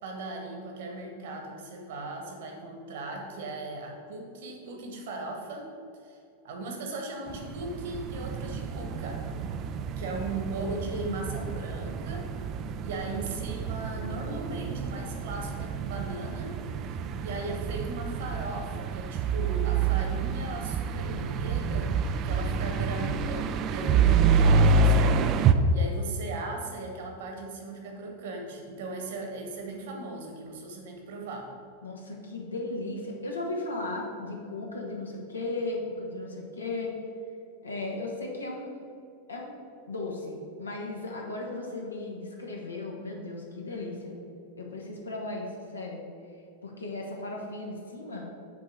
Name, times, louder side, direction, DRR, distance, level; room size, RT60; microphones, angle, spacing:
voice 1, 0.0-5.7 6.0-6.2 6.4-9.2 9.6-12.3 12.8-16.6 16.9-31.5, right 2 dB, 55° right, 2 dB, 1.3 m, -38 dB
sound 1, 7.3-25.5, right 5 dB, 35° right, 0.4 m, -28 dB
voice 2, 10.8-11.3 23.8-24.3 31.8-37.0 37.6-38.8 39.3-39.5 39.9-44.2 44.6-46.0 46.6-48.3, left 2 dB, 75° left, -1 dB, 1.3 m, -36 dB
6.0 x 4.5 x 6.2 m, 2.4 s
figure-of-eight pair, 90°, 0 cm